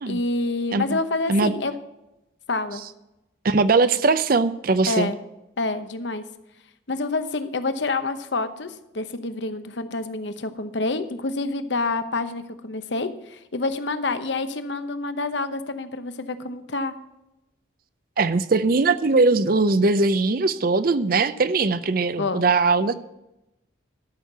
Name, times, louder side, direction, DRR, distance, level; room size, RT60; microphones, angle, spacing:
voice 1, 0.1-1.7 2.5-2.8 4.8-5.2 5.6-6.2 6.9-16.9 22.2-22.4, left 3 dB, 65° left, 10 dB, 0.9 m, -27 dB
voice 2, 3.4-5.1 18.2-22.9, right 3 dB, 50° right, 14 dB, 0.6 m, -20 dB
13.0 x 6.4 x 6.8 m, 0.94 s
head